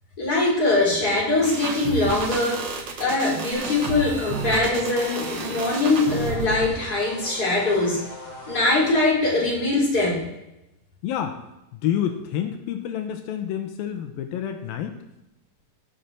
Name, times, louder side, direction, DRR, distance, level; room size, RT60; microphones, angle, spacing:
voice 1, 0.2-8.0 8.5-10.2, left 2 dB, 25° left, -4 dB, 4.6 m, -22 dB
sound 1, 1.4-6.7, right 4 dB, 50° right, 1.4 m, -31 dB
sound 2, 3.5-9.0, left 2 dB, 65° left, 4.8 m, -40 dB
voice 2, 11.0-11.4 11.7-15.0, left 10 dB, 85° left, 6 dB, 2.7 m, -28 dB
19.0 x 6.8 x 4.5 m, 0.90 s
omnidirectional pair, 4.1 m